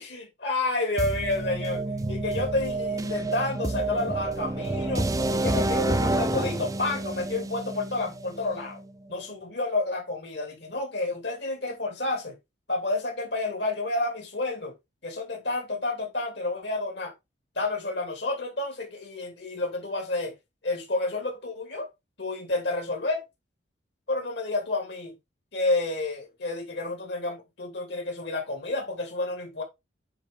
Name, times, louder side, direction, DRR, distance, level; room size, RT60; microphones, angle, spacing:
voice 1, 0.0-8.8 9.1-12.4 12.7-14.7 15.0-17.1 17.5-20.4 20.6-21.9 22.2-23.2 24.1-25.1 25.5-29.6, left 2 dB, 60° left, 2.7 m, -30 dB
sound 1, 1.0-8.9, right 2 dB, 15° right, 0.4 m, -29 dB
8.9 x 4.0 x 3.6 m
head